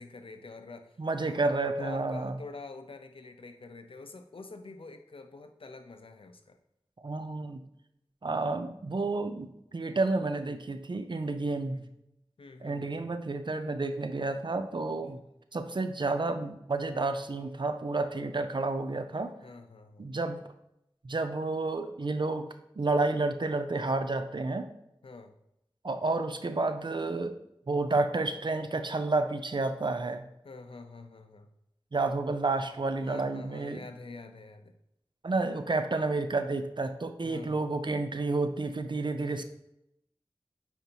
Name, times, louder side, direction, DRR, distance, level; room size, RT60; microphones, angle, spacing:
voice 1, 0.0-1.5 1.8-6.6 11.4-11.9 12.4-13.0 15.0-15.2 17.4-17.5 19.4-20.1 25.0-25.3 30.4-31.5 33.0-34.7 37.2-37.7 39.4-39.5, left 3 dB, 75° left, 7 dB, 0.7 m, -47 dB
voice 2, 1.0-2.4 7.0-7.6 8.2-11.8 12.6-15.2 15.5-19.3 20.0-20.4 21.0-22.5 22.8-24.7 25.8-27.4 27.7-30.2 31.9-33.8 35.2-39.4, right 3 dB, 55° right, 9 dB, 0.6 m, -30 dB
9.1 x 4.5 x 2.9 m, 0.82 s
wide cardioid pair, 55°, 9 cm